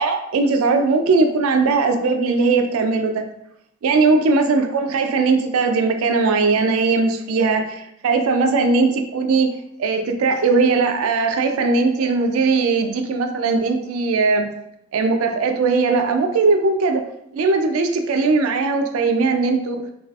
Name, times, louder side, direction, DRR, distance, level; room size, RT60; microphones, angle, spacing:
voice 1, 0.0-3.3 3.8-14.5 14.9-17.0 17.3-19.8, right 4 dB, 85° right, 6 dB, 0.4 m, -19 dB
3.2 x 2.4 x 2.3 m, 0.76 s
head